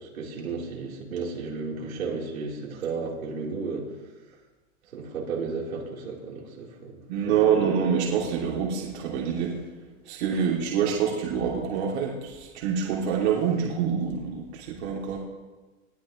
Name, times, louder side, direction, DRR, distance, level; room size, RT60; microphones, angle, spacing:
voice 1, 0.1-3.9 4.9-6.9 7.3-7.6 10.3-10.4, right 4 dB, 85° right, -3 dB, 4.1 m, -33 dB
voice 2, 7.1-9.6 10.0-15.2, right 7 dB, 50° right, -3 dB, 2.9 m, -26 dB
20.0 x 12.0 x 3.2 m, 1.2 s
hypercardioid pair, 145°, 41 cm